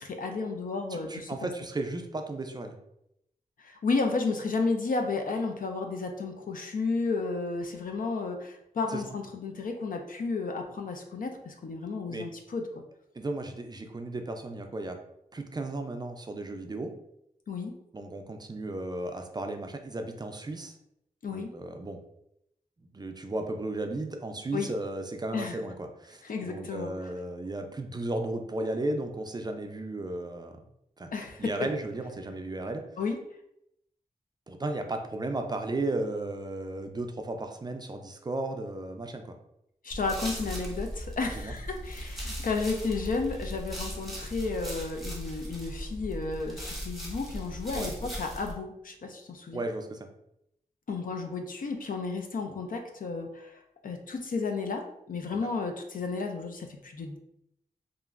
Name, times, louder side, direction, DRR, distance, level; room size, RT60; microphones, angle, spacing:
voice 1, 0.0-1.3 3.6-12.6 17.5-17.7 21.2-21.5 24.5-24.7 25.3-25.6 26.2-26.9 31.1-31.7 33.0-33.2 39.8-49.6 50.9-53.5 53.8-54.8 55.1-57.2, left 4 dB, 65° left, 4 dB, 0.4 m, -32 dB
voice 2, 0.9-2.8 8.9-9.0 12.1-12.3 13.1-15.0 15.3-16.9 17.9-20.8 21.3-22.0 22.9-30.6 31.0-31.1 31.4-32.8 34.5-39.3 41.3-41.5 47.7-47.9 49.5-50.1 55.3-55.4, right 2 dB, 25° right, 5 dB, 0.3 m, -35 dB
sound 1, 39.9-48.5, equal, ahead, 0.9 m, -38 dB
2.9 x 2.5 x 2.4 m, 0.78 s
wide cardioid pair, 75°, 15 cm